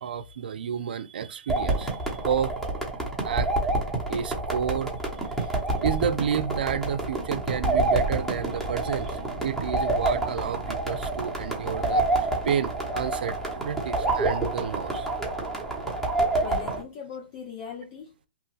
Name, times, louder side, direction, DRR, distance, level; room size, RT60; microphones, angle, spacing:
voice 1, 0.0-2.6 2.9-3.0 3.2-3.5 4.1-4.9 5.4-5.5 5.8-15.1, right 8 dB, 70° right, 0.3 m, -31 dB
sound 1, 1.5-16.8, right 2 dB, 5° left, 1.0 m, -28 dB
voice 2, 16.4-18.3, left 6 dB, 40° left, 0.6 m, -39 dB
3.0 x 2.2 x 3.1 m
hypercardioid pair, 130°, 5 cm